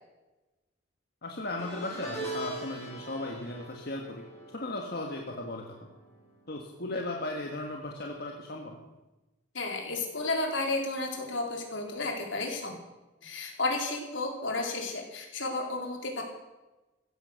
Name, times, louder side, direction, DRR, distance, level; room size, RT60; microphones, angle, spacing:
voice 1, 1.2-4.2 4.5-5.9 6.5-8.8, left 2 dB, 55° left, 1 dB, 1.6 m, -36 dB
sound 1, 1.6-7.0 7.2-7.6 8.8-8.9, right 2 dB, 15° left, 7.9 m, -43 dB
voice 2, 9.5-12.8 13.2-16.2, left 2 dB, 75° left, 1 dB, 4.0 m, -32 dB
16.0 x 14.0 x 6.5 m, 1.1 s
head